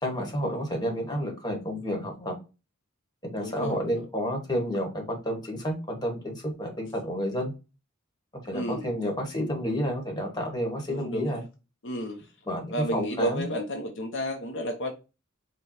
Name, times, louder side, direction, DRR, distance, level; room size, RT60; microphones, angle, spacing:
voice 1, 0.0-2.3 3.2-7.5 8.4-11.4 12.5-13.5, equal, 20° left, 1.2 m, -30 dB
voice 2, 3.4-4.0 8.5-8.9 10.8-11.3 11.8-12.3 12.7-14.9, equal, 65° left, 0.7 m, -32 dB
4.9 x 2.2 x 4.2 m
head